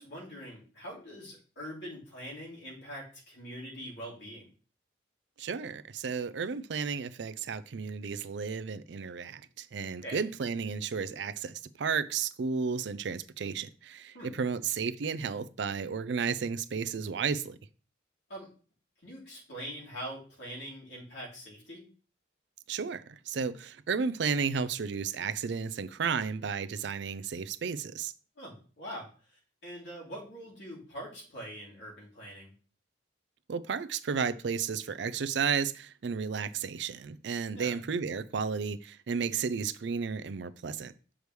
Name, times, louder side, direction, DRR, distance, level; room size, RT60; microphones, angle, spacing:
voice 1, 0.0-4.4 10.0-10.3 14.1-14.3 18.3-18.5 19.0-21.8 28.4-32.5 37.5-37.8, equal, 70° left, 3.2 m, -43 dB
voice 2, 5.4-17.6 22.7-28.1 33.5-40.9, right 6 dB, 65° right, 0.4 m, -33 dB
6.8 x 4.8 x 3.2 m
head